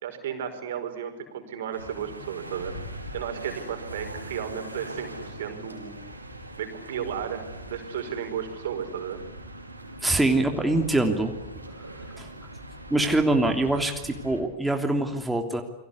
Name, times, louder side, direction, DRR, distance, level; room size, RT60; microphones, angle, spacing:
voice 1, 0.0-2.8 3.1-6.0 6.6-9.2, right 8 dB, 60° right, 7 dB, 5.2 m, -34 dB
sound 1, 1.7-14.4, right 1 dB, 85° right, 4.8 m, -41 dB
voice 2, 10.0-11.3 12.2-12.3 12.9-15.6, right 2 dB, 5° right, 3 dB, 3.1 m, -24 dB
29.5 x 24.0 x 8.4 m, 0.80 s
figure-of-eight pair, 90°, 0 cm